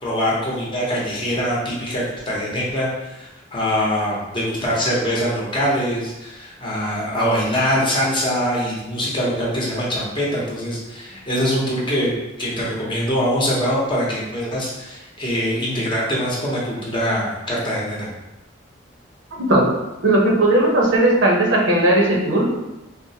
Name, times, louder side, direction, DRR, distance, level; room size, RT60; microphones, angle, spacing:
voice 1, 0.0-18.1, equal, 25° left, -5 dB, 0.8 m, -23 dB
voice 2, 19.3-19.7 20.0-22.5, right 1 dB, 75° right, -2 dB, 0.7 m, -17 dB
4.1 x 2.1 x 2.7 m, 1.0 s
head